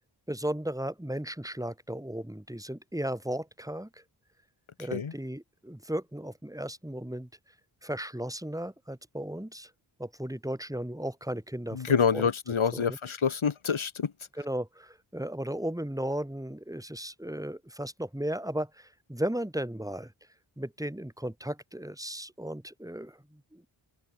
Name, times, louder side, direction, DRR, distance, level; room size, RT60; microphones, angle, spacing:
voice 1, 0.3-4.0 4.8-7.3 7.8-9.7 10.0-11.9 12.1-12.3 12.7-13.0 14.4-20.1 20.6-23.7, right 1 dB, 5° right, 7.9 m, -35 dB
voice 2, 11.7-14.1, left 6 dB, 85° left, 3.6 m, -27 dB
open air
wide cardioid pair, 105°, 47 cm